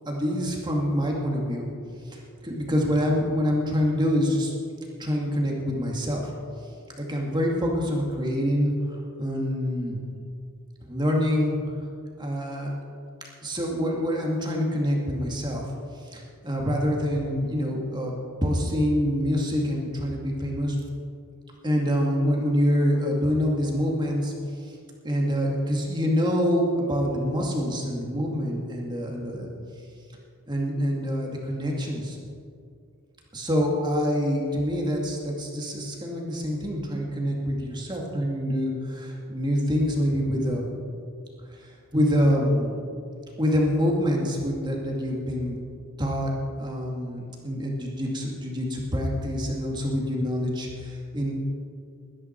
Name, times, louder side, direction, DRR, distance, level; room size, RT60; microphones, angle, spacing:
voice 1, 0.1-1.7 2.1-4.6 5.0-6.3 7.0-10.0 10.8-11.6 12.2-12.7 13.4-15.6 16.1-18.1 18.4-20.8 21.6-24.3 25.0-29.5 30.5-32.2 33.3-40.8 41.6-42.8 43.4-45.6 46.0-51.3, equal, 20° right, -1 dB, 2.3 m, -26 dB
21.5 x 10.0 x 4.6 m, 2.3 s
head